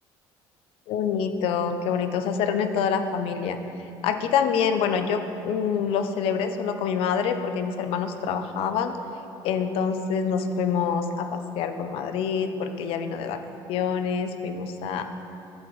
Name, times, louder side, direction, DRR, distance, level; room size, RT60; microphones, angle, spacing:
voice 1, 0.9-3.6 4.0-9.0 9.4-13.4 13.7-15.0, left 6 dB, 75° left, 8 dB, 0.6 m, -26 dB
12.0 x 7.9 x 3.1 m, 2.8 s
cardioid pair, 145°, 10 cm